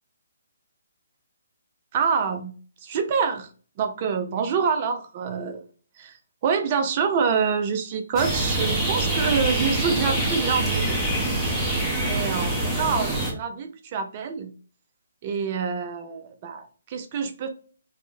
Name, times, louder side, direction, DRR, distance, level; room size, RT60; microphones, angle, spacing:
voice 1, 1.9-2.5 2.8-3.5 3.8-5.6 6.0-6.2 6.4-11.6 12.0-14.5 15.2-17.5, right 6 dB, 35° right, 8 dB, 0.5 m, -26 dB
sound 1, 8.2-13.3, right 1 dB, 5° right, 0.8 m, -25 dB
3.4 x 2.1 x 2.6 m, 0.41 s
hypercardioid pair, 145°, 0 cm